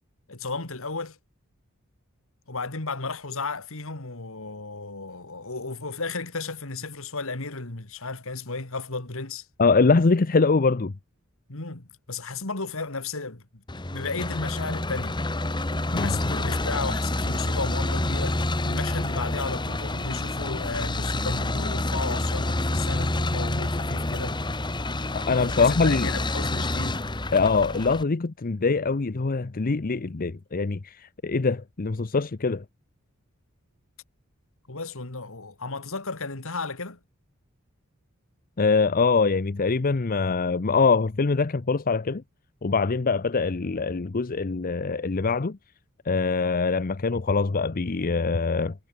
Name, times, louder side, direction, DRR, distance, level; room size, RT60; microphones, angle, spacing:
voice 1, 0.3-1.2 2.5-9.5 11.5-13.4 13.9-15.2 15.9-24.4 25.6-27.0 34.7-37.0, left 3 dB, 65° left, 2.4 m, -34 dB
voice 2, 9.6-10.9 15.9-16.2 25.1-26.1 27.3-32.6 38.6-42.2 42.6-45.6 46.1-48.7, left 4 dB, 40° left, 0.7 m, -23 dB
sound 1, 13.7-28.0, left 2 dB, 20° left, 1.4 m, -28 dB
head